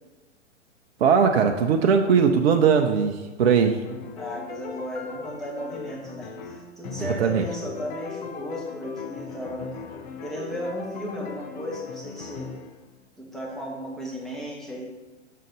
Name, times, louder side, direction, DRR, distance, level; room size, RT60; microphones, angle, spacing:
voice 1, 1.0-3.8 7.2-7.4, right 6 dB, 55° right, 4 dB, 0.6 m, -19 dB
sound 1, 3.8-12.8, left 6 dB, 40° left, 0.6 m, -39 dB
voice 2, 4.1-9.8 10.2-12.5 13.2-14.8, equal, ahead, -3 dB, 1.2 m, -35 dB
6.5 x 3.8 x 5.3 m, 1.3 s
figure-of-eight pair, 115°, 37 cm